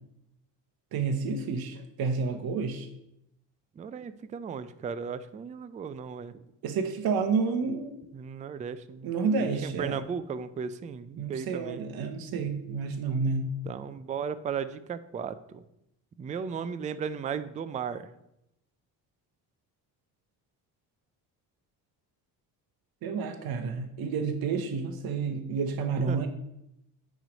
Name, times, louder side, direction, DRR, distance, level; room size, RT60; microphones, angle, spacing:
voice 1, 0.9-2.9 6.6-8.0 9.0-10.0 11.2-13.5 23.0-26.3, right 5 dB, 60° right, 6 dB, 0.9 m, -30 dB
voice 2, 3.8-6.4 8.1-9.1 9.4-11.8 13.7-15.6 16.2-18.1 26.1-26.2, right 7 dB, 20° right, 14 dB, 0.3 m, -36 dB
9.2 x 3.1 x 5.1 m, 0.83 s
cardioid pair, 90°, 41 cm